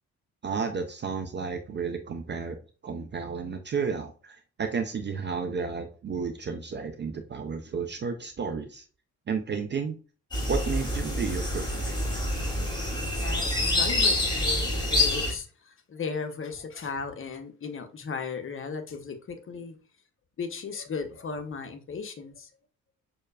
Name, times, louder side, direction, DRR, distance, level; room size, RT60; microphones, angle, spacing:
voice 1, 0.4-2.6 2.8-8.8 9.3-10.0 10.5-12.0, right 5 dB, 25° right, 0.5 m, -32 dB
sound 1, 10.3-15.3, left 1 dB, 10° left, 1.8 m, -27 dB
voice 2, 12.5-19.8 20.4-22.5, left 5 dB, 30° left, 0.7 m, -36 dB
6.3 x 2.2 x 2.3 m
figure-of-eight pair, 40°, 44 cm